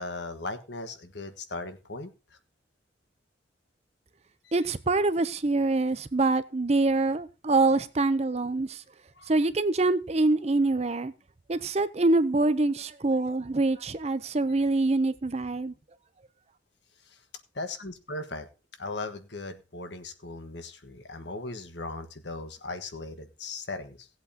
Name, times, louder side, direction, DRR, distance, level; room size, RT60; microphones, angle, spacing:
voice 1, 0.0-2.1 4.4-4.5 9.1-9.3 17.1-17.2 17.5-18.5 18.8-24.1, left 2 dB, 65° left, 1.4 m, -38 dB
voice 2, 4.5-8.8 9.3-11.1 11.5-15.7, right 2 dB, 35° right, 0.6 m, -25 dB
18.0 x 8.1 x 2.8 m
head